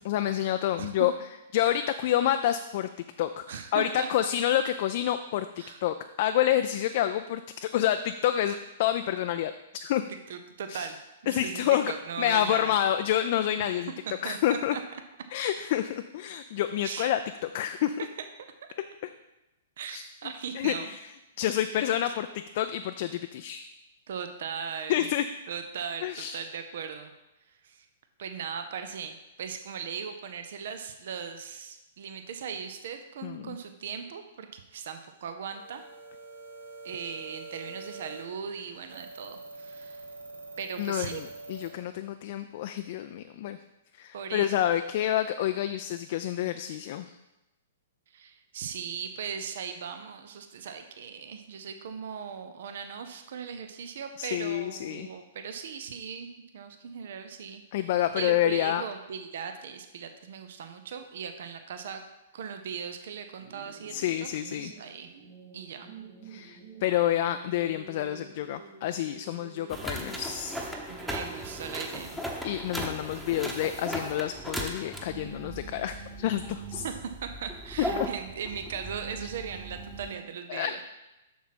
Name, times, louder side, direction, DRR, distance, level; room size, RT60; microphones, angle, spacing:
voice 1, 0.0-1.1 1.5-2.9 3.2-5.5 5.8-9.5 9.8-10.0 10.7-10.9 11.3-11.9 12.2-13.9 14.2-14.8 15.3-18.1 19.9-20.0 20.5-21.0 21.4-22.3 22.5-23.7 24.9-25.3 26.0-26.4 33.2-33.6 40.8-43.6 44.0-47.1 54.2-55.1 57.7-58.8 63.9-64.7 66.3-70.6 72.4-76.8 80.5-80.7, left 11 dB, 50° left, 8 dB, 0.3 m, -28 dB
voice 2, 0.8-1.1 3.5-4.1 5.6-5.8 10.3-12.7 14.1-14.8 16.8-17.1 18.0-18.1 19.8-20.9 24.1-25.1 25.5-26.1 26.3-27.1 27.6-27.9 28.2-35.9 36.8-40.1 40.6-41.2 44.1-44.6 48.1-57.6 58.2-62.0 62.3-63.9 64.2-64.3 64.6-65.1 65.5-65.9 70.9-72.2 76.8-80.8, right 7 dB, 60° right, 7 dB, 0.6 m, -38 dB
sound 1, 35.5-41.7, right 2 dB, 85° right, 1.6 m, -45 dB
sound 2, 63.4-72.4, right 4 dB, 35° right, 3.0 m, -50 dB
sound 3, 69.7-80.2, right 1 dB, 5° right, 1.0 m, -37 dB
7.0 x 6.2 x 4.2 m, 0.98 s
figure-of-eight pair, 115°, 0 cm